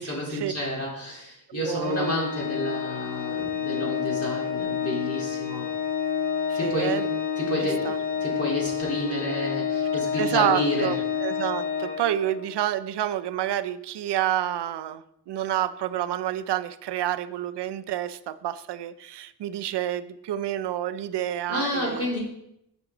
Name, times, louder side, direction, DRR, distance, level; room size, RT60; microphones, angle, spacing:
voice 1, 0.0-5.8 6.5-7.1 7.4-10.9 21.5-22.2, left 1 dB, 35° left, -4 dB, 3.5 m, -30 dB
voice 2, 1.5-2.1 6.5-7.1 7.6-8.0 10.2-22.1, right 12 dB, 85° right, 14 dB, 0.5 m, -29 dB
Organ, 1.8-12.6, left 7 dB, 80° left, 1.4 m, -29 dB
9.0 x 6.1 x 3.8 m, 0.78 s
cardioid pair, 80°, 40 cm